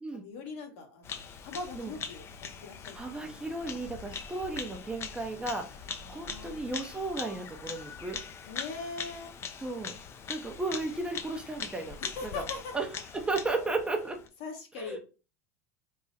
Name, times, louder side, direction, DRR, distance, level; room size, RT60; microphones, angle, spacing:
voice 1, 0.1-3.4 6.0-6.7 8.5-9.3 12.0-12.7 13.5-13.9 14.4-15.0, left 4 dB, 70° left, 2 dB, 1.2 m, -42 dB
Bird vocalization bird call bird song, 1.0-14.3, left 6 dB, 35° left, 0.4 m, -42 dB
voice 2, 2.9-8.2 9.6-9.9 10.3-12.0 12.2-12.4 12.7-12.9 13.1-14.2 14.8-15.0, right 2 dB, 10° right, 4 dB, 0.6 m, -34 dB
3.7 x 2.0 x 3.9 m, 0.33 s
supercardioid pair, 105°, 8 cm